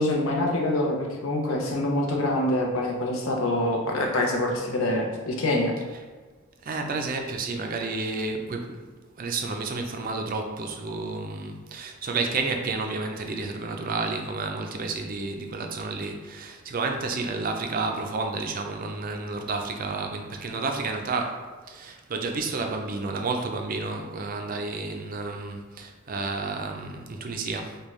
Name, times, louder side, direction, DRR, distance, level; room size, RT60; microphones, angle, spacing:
voice 1, 0.0-5.7, left 1 dB, 80° left, 0 dB, 0.7 m, -25 dB
voice 2, 6.6-8.9 9.2-27.8, right 3 dB, 45° right, 4 dB, 0.4 m, -31 dB
5.2 x 2.2 x 3.1 m, 1.4 s
head